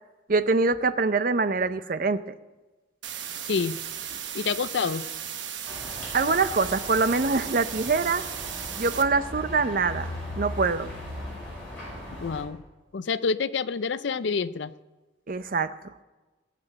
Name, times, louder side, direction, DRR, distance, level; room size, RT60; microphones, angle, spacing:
voice 1, 0.3-2.4 6.1-8.2 8.8-10.1 10.4-10.9 15.3-15.7, right 4 dB, 45° right, 12 dB, 0.5 m, -24 dB
sound 1, 3.0-9.0, right 9 dB, 65° right, 1.0 m, -36 dB
voice 2, 3.5-3.8 4.3-5.1 12.2-12.6 12.9-14.7, left 5 dB, 65° left, 15 dB, 0.5 m, -27 dB
sound 2, 5.7-12.4, left 1 dB, 5° left, 6.8 m, -38 dB
19.0 x 6.8 x 8.9 m, 1.2 s
head